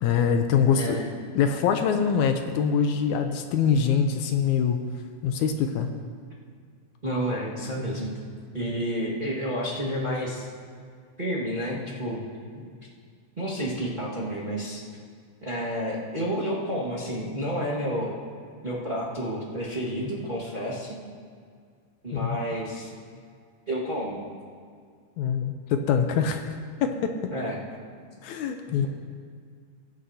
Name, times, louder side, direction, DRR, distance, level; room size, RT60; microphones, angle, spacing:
voice 1, 0.0-1.1 1.4-4.8 5.2-5.9 22.1-22.4 25.2-26.5 26.8-27.1 28.2-28.9, left 7 dB, 80° left, 6 dB, 2.0 m, -24 dB
voice 2, 0.7-1.1 7.0-8.1 8.5-10.5 11.2-12.2 12.5-12.7 13.4-14.8 15.4-18.1 18.6-21.0 22.0-23.0 23.7-24.2 27.3-27.6 28.7-28.9, equal, 25° right, -7 dB, 1.2 m, -30 dB
21.0 x 9.3 x 2.8 m, 2.1 s
omnidirectional pair, 3.5 m